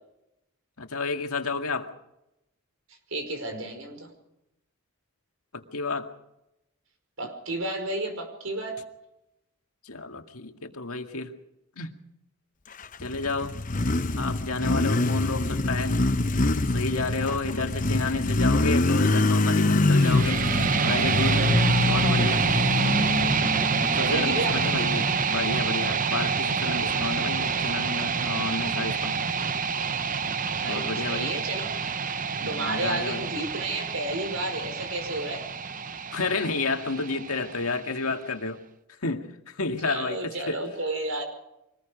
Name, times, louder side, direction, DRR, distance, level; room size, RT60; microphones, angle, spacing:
voice 1, 0.8-1.9 5.5-6.1 9.8-11.3 11.8-12.0 13.0-13.5 14.2-16.0 16.7-20.4 20.8-21.5 21.8-22.4 24.0-29.2 30.6-31.3 32.4-33.2 36.1-38.6 39.0-40.6, left 3 dB, 85° left, 5 dB, 2.1 m, -31 dB
voice 2, 3.1-4.1 7.2-8.8 23.9-24.6 30.6-31.7 32.5-35.4 39.8-41.2, right 2 dB, 70° right, 5 dB, 5.4 m, -32 dB
Motorcycle, 12.8-25.5, left 2 dB, 35° left, 0.8 m, -25 dB
sound 1, 19.9-37.9, right 5 dB, 35° right, 0.7 m, -27 dB
24.5 x 20.0 x 5.2 m, 0.88 s
head